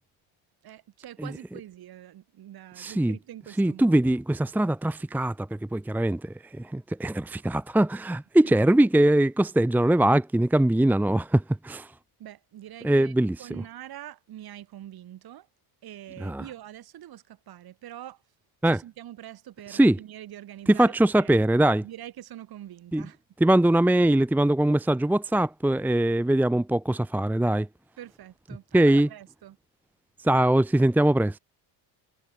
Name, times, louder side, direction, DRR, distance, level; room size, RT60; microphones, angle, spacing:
voice 1, 0.6-4.1 8.4-8.6 12.2-13.1 13.4-15.5 15.8-18.2 18.6-21.3 21.8-23.2 28.0-29.6, right 12 dB, 45° right, 7.6 m, -44 dB
voice 2, 2.8-3.1 3.6-11.9 12.8-13.3 16.2-16.4 18.6-18.8 19.7-20.0 20.7-21.8 22.9-23.0 23.4-27.7 28.7-29.1 30.2-31.4, right 1 dB, 5° right, 0.9 m, -22 dB
cardioid pair, 165°, 50 cm